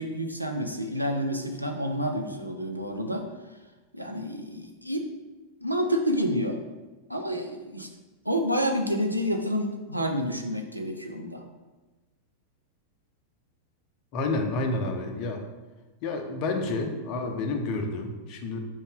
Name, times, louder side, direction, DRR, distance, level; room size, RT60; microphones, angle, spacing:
voice 1, 0.0-3.3 3.9-5.0 5.6-6.6 7.1-7.9 8.3-11.4, equal, 90° right, 3 dB, 0.4 m, -29 dB
voice 2, 14.1-15.4 16.0-18.6, left 2 dB, 40° left, 4 dB, 0.5 m, -29 dB
4.8 x 2.7 x 3.6 m, 1.2 s
figure-of-eight pair, 90°, 0 cm